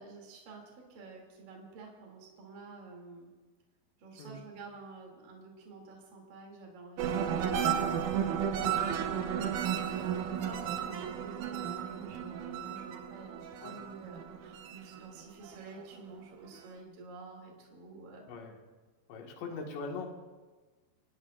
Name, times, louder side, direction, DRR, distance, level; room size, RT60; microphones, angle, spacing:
voice 1, 0.0-3.3 4.0-18.3, right 3 dB, 55° right, -1 dB, 4.3 m, -50 dB
sound 1, 7.0-15.8 16.2-16.7, right 8 dB, 75° right, 1.8 m, -33 dB
voice 2, 18.3-18.6 19.1-20.1, left 4 dB, 90° left, 1 dB, 4.1 m, -41 dB
28.0 x 18.5 x 2.6 m, 1.3 s
omnidirectional pair, 4.9 m